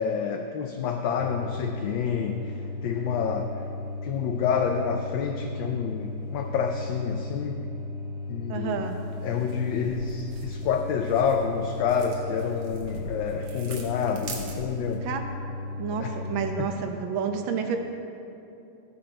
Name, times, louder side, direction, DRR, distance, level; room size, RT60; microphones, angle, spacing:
voice 1, 0.0-3.5 4.0-7.6 8.3-8.9 9.2-15.1 16.0-16.1 16.6-16.7, left 6 dB, 75° left, 4 dB, 1.2 m, -28 dB
sound 1, 1.2-16.5, left 3 dB, 45° left, 0.8 m, -36 dB
voice 2, 8.5-9.0 13.6-13.7 15.0-15.3 15.8-17.8, right 6 dB, 70° right, 5 dB, 1.5 m, -30 dB
sound 2, 8.8-15.0, right 4 dB, 85° right, 2.2 m, -44 dB
16.5 x 5.9 x 4.4 m, 2.7 s
omnidirectional pair, 2.3 m